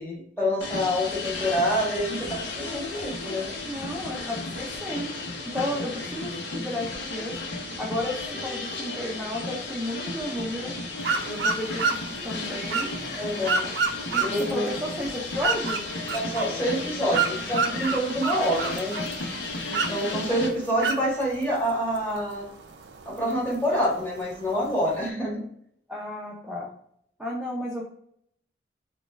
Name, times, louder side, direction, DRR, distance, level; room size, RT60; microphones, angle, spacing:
voice 1, 0.0-3.5 13.1-13.7 14.2-14.7 16.1-18.9 19.7-22.4 23.0-25.4, equal, 10° left, -5 dB, 1.5 m, -27 dB
sound 1, 0.6-20.5, left 2 dB, 85° left, 0.8 m, -34 dB
voice 2, 3.6-5.1 5.5-7.3 7.8-10.7 11.3-12.9 14.1-15.8 20.2-20.4 25.9-26.7 27.2-27.8, left 1 dB, 5° right, -4 dB, 0.5 m, -33 dB
sound 2, 11.0-25.1, right 4 dB, 80° right, 0.5 m, -31 dB
4.1 x 2.4 x 3.4 m, 0.69 s
head